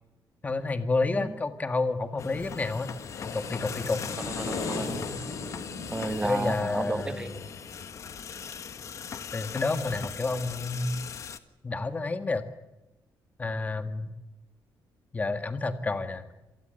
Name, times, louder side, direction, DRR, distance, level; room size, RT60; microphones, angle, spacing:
voice 1, 0.4-2.9 3.3-4.0 6.2-7.4 9.3-11.0 11.6-12.5 13.4-14.1 15.1-16.3, left 3 dB, 20° left, 8 dB, 1.8 m, -29 dB
sound 1, 2.1-8.9, left 3 dB, 75° left, 7.3 m, -39 dB
sound 2, 2.2-11.4, left 7 dB, 40° left, 1.4 m, -40 dB
voice 2, 4.2-5.0 5.9-7.3, right 2 dB, 10° right, 10 dB, 1.5 m, -32 dB
27.0 x 19.5 x 8.0 m, 0.95 s
cardioid pair, 170°, 8 cm